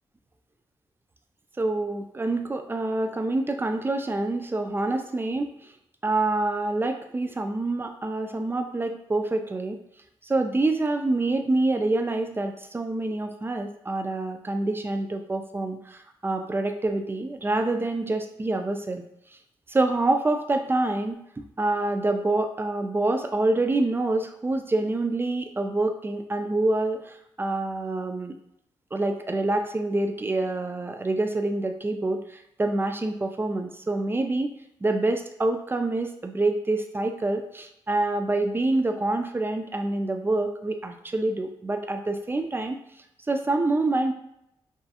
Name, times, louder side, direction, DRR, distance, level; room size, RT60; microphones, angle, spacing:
voice 1, 1.6-5.7 6.0-9.8 10.2-19.0 19.7-21.2 21.6-28.3 28.9-34.5 34.8-42.8 43.3-44.1, right 2 dB, 20° right, 6 dB, 0.3 m, -26 dB
2.5 x 2.4 x 2.4 m, 0.78 s
supercardioid pair, 45°, 10 cm